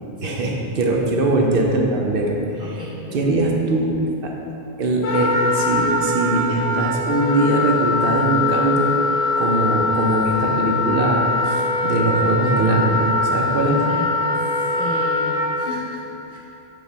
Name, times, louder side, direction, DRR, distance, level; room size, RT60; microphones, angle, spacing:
voice 1, 0.2-2.8 3.1-3.9 4.2-4.3 4.8-8.9 9.4-13.0 13.3-13.8, right 2 dB, 60° right, 0 dB, 0.9 m, -21 dB
voice 2, 2.6-3.2 13.9-14.1 14.7-16.4, left 3 dB, 55° left, -6 dB, 0.7 m, -34 dB
Wind instrument woodwind instrument, 5.0-15.7, left 3 dB, 80° left, 1.0 m, -22 dB
5.7 x 5.2 x 3.4 m, 2.9 s
omnidirectional pair, 1.1 m